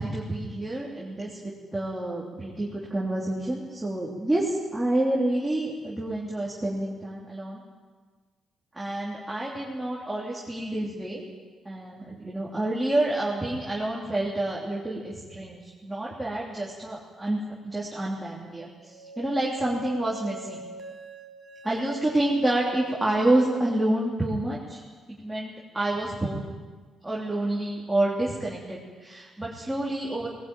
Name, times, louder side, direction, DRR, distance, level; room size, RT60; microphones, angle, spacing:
voice 1, 0.0-7.6 8.7-11.2 11.6-17.4 17.6-20.6 21.6-24.8 25.2-26.5 27.0-30.3, right 1 dB, 10° right, -5 dB, 3.3 m, -28 dB
sound 1, 18.8-23.8, right 2 dB, 30° right, 5.2 m, -42 dB
19.5 x 18.5 x 9.2 m, 1.4 s
cardioid pair, 130°, 0 cm